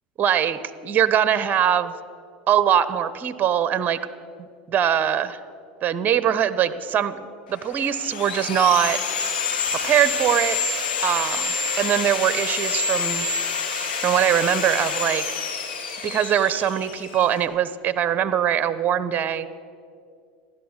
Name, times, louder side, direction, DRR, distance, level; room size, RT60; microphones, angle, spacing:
voice 1, 0.2-1.9 2.5-4.0 4.7-5.4 5.8-9.0 9.8-10.6 11.0-13.3 14.0-15.2 16.0-19.5, right 9 dB, 35° right, 13 dB, 1.0 m, -22 dB
Sawing, 7.6-17.4, left 5 dB, 80° left, 2.1 m, -27 dB
15.0 x 11.5 x 8.1 m, 2.3 s
hypercardioid pair, 95°, 5 cm